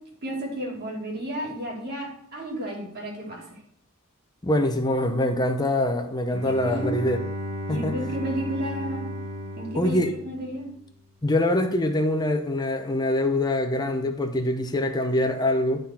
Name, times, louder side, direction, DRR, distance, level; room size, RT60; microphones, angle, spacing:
voice 1, 0.2-3.6 6.4-6.9 7.7-9.1 9.5-10.0 10.2-10.7, equal, 50° right, -1 dB, 2.3 m, -32 dB
voice 2, 4.4-7.2 7.7-7.9 9.7-10.1 11.2-15.9, left 1 dB, 20° left, 5 dB, 0.7 m, -24 dB
Bowed string instrument, 6.3-11.0, equal, 80° right, 1.5 m, -35 dB
11.5 x 3.9 x 4.2 m, 0.66 s
head